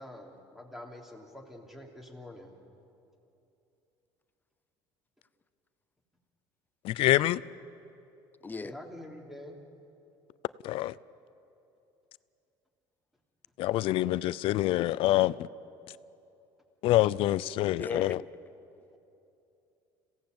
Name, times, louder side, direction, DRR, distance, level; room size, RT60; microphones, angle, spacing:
voice 1, 0.0-2.5 8.6-9.6, left 1 dB, 5° right, 3.3 m, -46 dB
voice 2, 6.8-7.4 10.6-10.9 13.6-15.5 16.8-18.2, left 15 dB, 65° left, 0.5 m, -26 dB
voice 3, 17.7-18.3, left 4 dB, 20° left, 0.7 m, -37 dB
27.0 x 17.0 x 7.9 m
cardioid pair, 110°, 10 cm